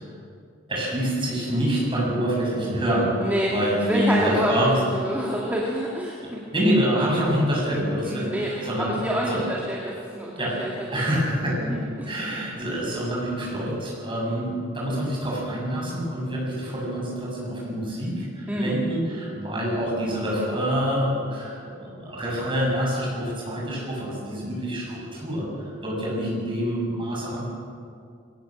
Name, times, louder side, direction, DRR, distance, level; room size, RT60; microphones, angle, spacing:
voice 1, 0.7-4.8 6.2-9.4 10.4-10.6 10.9-27.5, equal, 25° right, -4 dB, 7.6 m, -26 dB
voice 2, 3.2-3.5 3.9-6.4 8.0-10.3 10.6-10.7 11.6-12.1 18.5-18.8, equal, 10° right, -4 dB, 2.3 m, -27 dB
21.5 x 18.5 x 7.4 m, 2.4 s
head